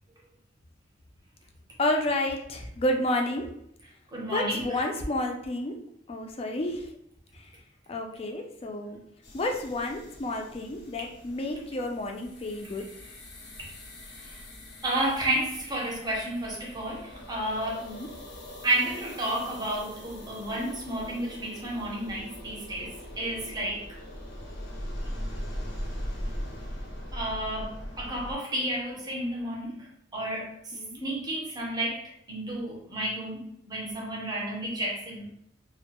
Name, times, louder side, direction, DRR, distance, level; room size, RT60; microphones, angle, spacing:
voice 1, 1.8-3.5 4.3-5.8 6.1-6.9 7.9-9.0 9.3-12.9 17.8-18.1 30.7-31.0, left 1 dB, 35° left, 3 dB, 0.4 m, -30 dB
voice 2, 4.1-4.9 13.6-13.7 14.1-14.4 14.8-17.9 18.6-23.8 27.1-29.9 30.1-30.5 30.9-35.3, right 1 dB, 20° right, -3 dB, 0.6 m, -31 dB
sound 1, 9.2-28.4, equal, 85° left, 0.7 m, -41 dB
2.2 x 2.0 x 2.8 m, 0.73 s
head